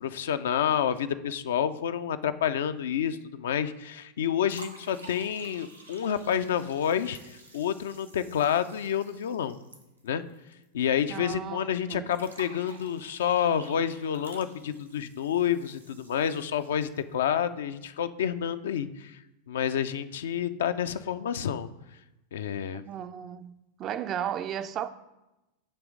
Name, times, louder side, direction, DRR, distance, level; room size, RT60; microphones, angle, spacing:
voice 1, 0.0-7.2 7.5-9.6 10.0-10.2 10.7-19.2 19.5-21.7 22.3-22.8, left 9 dB, 60° left, 0.4 m, -29 dB
sound 1, 4.4-10.6 10.9-11.0 12.1-17.1, right 1 dB, 90° right, 1.0 m, -50 dB
voice 2, 11.1-12.1 22.7-23.5 23.8-24.9, right 9 dB, 30° right, 0.4 m, -34 dB
8.6 x 3.1 x 6.2 m
figure-of-eight pair, 90°, 0 cm